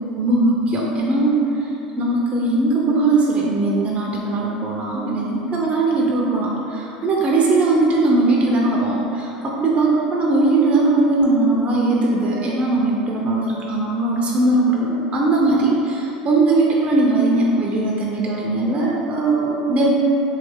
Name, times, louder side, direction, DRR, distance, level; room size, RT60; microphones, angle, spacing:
voice 1, 0.2-1.4 2.0-19.9, right 2 dB, 30° right, -3 dB, 0.5 m, -19 dB
3.2 x 2.7 x 3.5 m, 2.8 s
hypercardioid pair, 80°, 4 cm